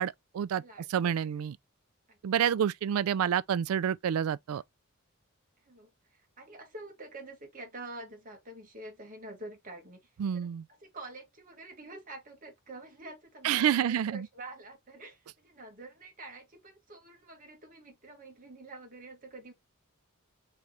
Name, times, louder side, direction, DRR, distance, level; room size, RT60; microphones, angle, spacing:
voice 1, 0.0-0.6 0.9-1.6 2.2-4.6 10.2-10.6 13.4-14.3, right 9 dB, 85° right, 0.3 m, -28 dB
voice 2, 0.6-1.1 2.1-2.6 5.6-19.5, right 2 dB, 40° right, 1.5 m, -47 dB
3.8 x 3.3 x 2.8 m
head